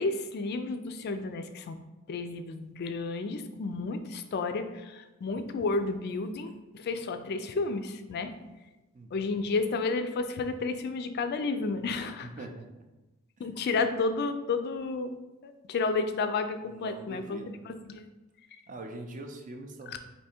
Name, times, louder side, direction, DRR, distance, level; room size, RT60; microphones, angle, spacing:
voice 1, 0.0-1.8 2.1-8.3 9.1-12.3 13.4-15.2 15.4-18.1 19.9-20.0, left 3 dB, 50° left, 9 dB, 0.3 m, -31 dB
voice 2, 8.9-9.4 12.2-12.7 13.4-13.5 16.7-17.6 18.7-20.0, right 2 dB, 35° right, 4 dB, 0.5 m, -43 dB
3.4 x 2.7 x 4.3 m, 1.1 s
head